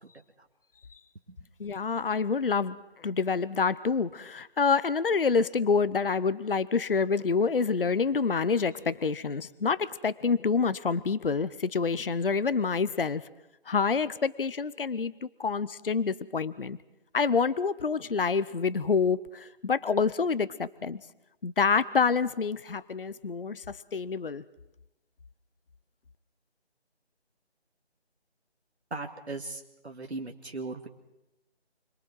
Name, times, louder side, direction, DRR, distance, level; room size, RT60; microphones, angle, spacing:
voice 1, 1.6-13.2 13.7-16.8 17.1-21.0 21.4-24.4, left 5 dB, 55° left, 16 dB, 0.8 m, -27 dB
voice 2, 28.9-30.9, right 3 dB, 75° right, 4 dB, 2.0 m, -38 dB
29.5 x 22.5 x 4.7 m, 0.92 s
figure-of-eight pair, 160°, 33 cm